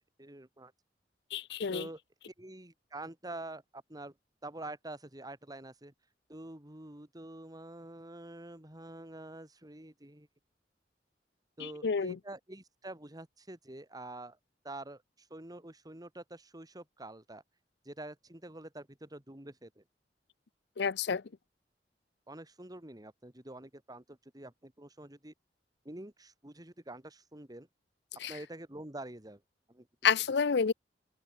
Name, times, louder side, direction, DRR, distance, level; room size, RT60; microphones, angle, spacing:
voice 1, 0.2-0.7 1.7-2.0 2.3-4.2 4.4-5.9 6.3-10.3 11.6-14.4 14.6-17.4 17.8-19.8 22.3-25.3 25.8-27.7 28.3-29.4 29.7-29.9, right 2 dB, 20° right, 2.6 m, -46 dB
voice 2, 1.3-1.8 11.6-12.2 20.8-21.2 28.2-28.3 30.0-30.7, left 6 dB, 70° left, 0.6 m, -29 dB
open air
head